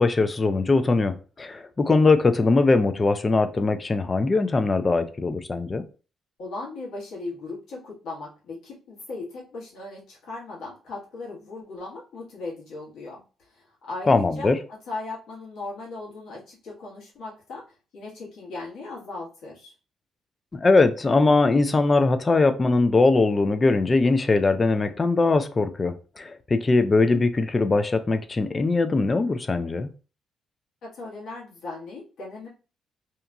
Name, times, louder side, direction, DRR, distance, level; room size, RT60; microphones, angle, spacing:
voice 1, 0.0-5.8 14.1-14.6 20.5-29.9, left 3 dB, 30° left, 10 dB, 0.4 m, -21 dB
voice 2, 6.4-17.6 17.9-19.7 30.8-32.5, left 3 dB, 80° left, -4 dB, 1.3 m, -38 dB
2.9 x 2.4 x 2.2 m, 0.35 s
cardioid pair, 90°, 0 cm